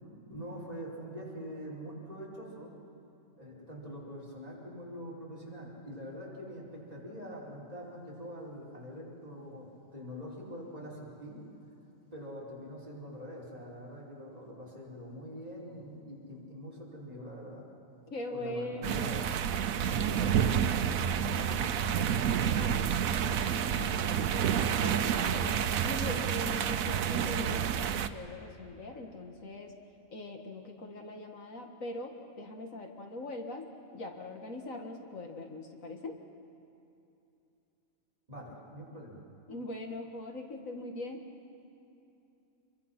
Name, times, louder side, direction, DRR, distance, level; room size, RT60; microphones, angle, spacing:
voice 1, 0.0-2.7 3.4-11.4 12.1-17.6 18.3-19.3 20.0-22.2 38.3-39.2, equal, 25° right, -5 dB, 5.2 m, -44 dB
voice 2, 18.1-19.1 22.5-24.5 24.8-25.6 25.8-29.7 30.1-36.2 39.5-41.2, left 2 dB, 70° left, 3 dB, 2.1 m, -41 dB
sound 1, 18.8-28.1, right 8 dB, 85° right, 1.2 m, -29 dB
27.5 x 23.0 x 6.0 m, 2.8 s
omnidirectional pair, 1.4 m